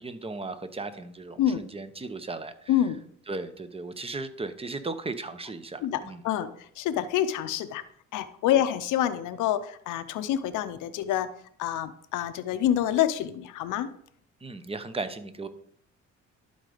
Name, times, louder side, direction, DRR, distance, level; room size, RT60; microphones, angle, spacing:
voice 1, 0.0-2.8 3.3-6.2 8.6-8.7 14.4-15.5, right 3 dB, 20° right, 11 dB, 0.8 m, -36 dB
voice 2, 2.7-3.0 5.8-7.8 8.1-11.3 11.6-13.9, left 11 dB, 85° left, 11 dB, 0.6 m, -27 dB
11.5 x 4.0 x 5.0 m, 0.64 s
cardioid pair, 90°, 30 cm